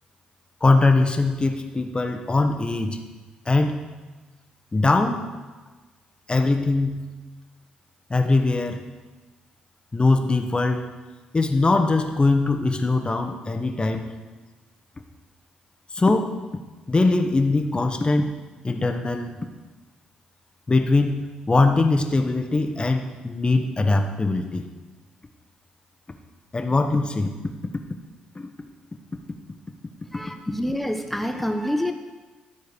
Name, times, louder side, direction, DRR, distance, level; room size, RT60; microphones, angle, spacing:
voice 1, 0.6-3.0 3.5-3.9 4.7-5.3 6.3-7.1 8.1-8.8 9.9-10.9 11.3-14.1 15.9-16.4 16.9-18.4 18.6-19.3 20.7-24.7 26.5-27.4 28.3-28.5, left 3 dB, 25° left, 6 dB, 1.3 m, -21 dB
voice 2, 30.1-31.9, equal, 5° left, 6 dB, 1.0 m, -27 dB
12.5 x 4.7 x 7.0 m, 1.3 s
hypercardioid pair, 45°, 4 cm